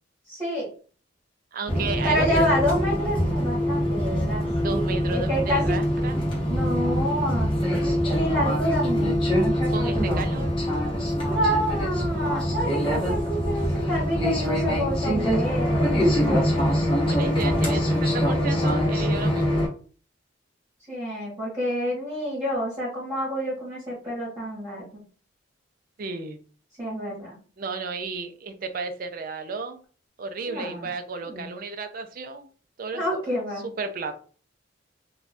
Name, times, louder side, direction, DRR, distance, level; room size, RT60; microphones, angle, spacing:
voice 1, 0.3-0.7 2.0-5.8 6.5-7.5 7.8-9.2 11.3-16.8 20.9-25.0 26.8-27.4 30.5-30.9 31.2-31.5 32.9-33.6, equal, 15° right, -8 dB, 1.1 m, -28 dB
voice 2, 1.5-2.5 4.6-6.2 9.7-10.5 16.9-19.7 26.0-26.4 27.6-29.8 30.2-32.5 32.8-33.4 33.8-34.2, right 4 dB, 45° right, 7 dB, 0.4 m, -33 dB
sound 1, 1.7-19.7, equal, 25° left, 1.0 m, -24 dB
2.5 x 2.2 x 3.3 m, 0.40 s
head